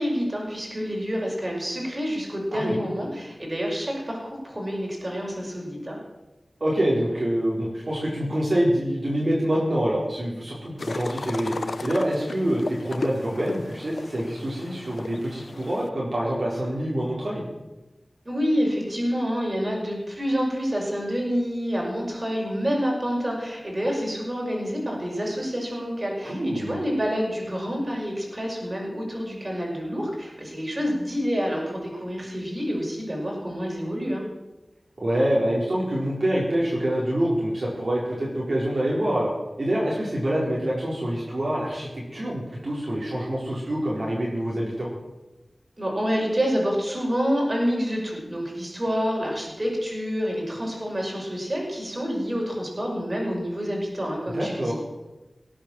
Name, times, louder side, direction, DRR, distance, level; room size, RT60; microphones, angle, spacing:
voice 1, 0.0-6.0 18.2-34.2 45.8-54.8, equal, 35° right, -1 dB, 5.7 m, -28 dB
voice 2, 6.6-17.4 26.2-26.8 35.0-39.3 39.6-44.9 54.3-54.8, right 1 dB, 60° right, -5 dB, 4.3 m, -26 dB
Elephants-Gargoullis, 10.8-15.9, left 3 dB, 80° left, 0.6 m, -35 dB
18.5 x 8.7 x 7.3 m, 1.1 s
wide cardioid pair, 70°, 0 cm